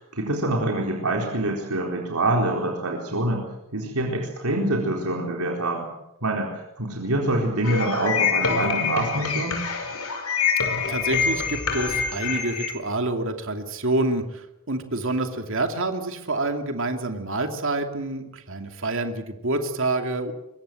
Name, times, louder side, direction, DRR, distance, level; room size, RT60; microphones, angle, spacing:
voice 1, 0.0-3.5 3.7-5.9 6.2-9.6, right 1 dB, 85° right, 0 dB, 4.1 m, -25 dB
sound 1, 7.6-12.7, left 5 dB, 80° left, 5.7 m, -25 dB
voice 2, 10.9-20.3, right 2 dB, 60° right, 6 dB, 2.6 m, -27 dB
24.5 x 23.0 x 7.8 m, 0.89 s
head